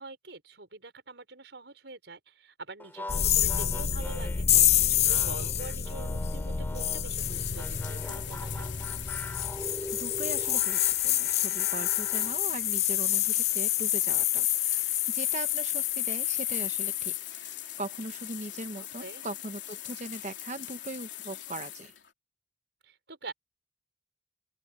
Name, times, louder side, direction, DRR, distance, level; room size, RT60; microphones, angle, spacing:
voice 1, 0.0-4.5 4.9-8.7 18.8-19.2 22.8-23.3, right 3 dB, 75° right, 4.6 m, -45 dB
sound 1, 2.8-7.1 7.6-12.4, left 1 dB, 10° left, 4.2 m, -43 dB
sound 2, 3.1-17.2, left 10 dB, 35° left, 0.6 m, -28 dB
sound 3, 7.1-22.1, left 13 dB, 85° left, 3.2 m, -42 dB
voice 2, 9.9-21.9, right 2 dB, 40° right, 1.2 m, -40 dB
open air
head